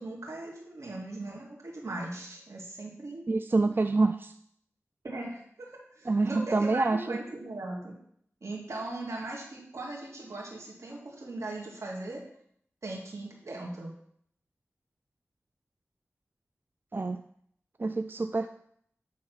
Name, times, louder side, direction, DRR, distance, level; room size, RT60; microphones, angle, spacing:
voice 1, 0.0-3.2 5.0-8.0 8.4-12.2 12.8-13.9, right 2 dB, 75° right, -3 dB, 2.4 m, -39 dB
voice 2, 3.3-4.3 6.1-7.2 16.9-17.2 17.8-18.5, right 3 dB, 45° right, 8 dB, 0.4 m, -26 dB
9.3 x 3.8 x 5.8 m, 0.67 s
wide cardioid pair, 50°, 5 cm